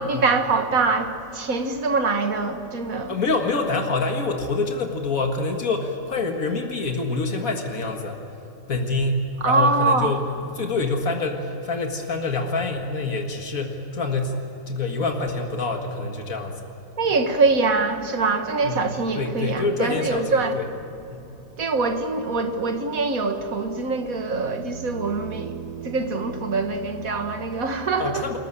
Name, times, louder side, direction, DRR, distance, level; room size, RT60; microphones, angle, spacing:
voice 1, 0.0-3.1 9.4-10.1 17.0-20.6 21.6-28.3, right 3 dB, 90° right, 2.1 m, -24 dB
voice 2, 3.1-8.2 8.7-14.4 14.7-16.6 18.6-18.9 19.1-20.7 21.1-21.3 28.0-28.4, left 3 dB, 90° left, 2.2 m, -26 dB
26.5 x 15.0 x 9.9 m
omnidirectional pair, 1.4 m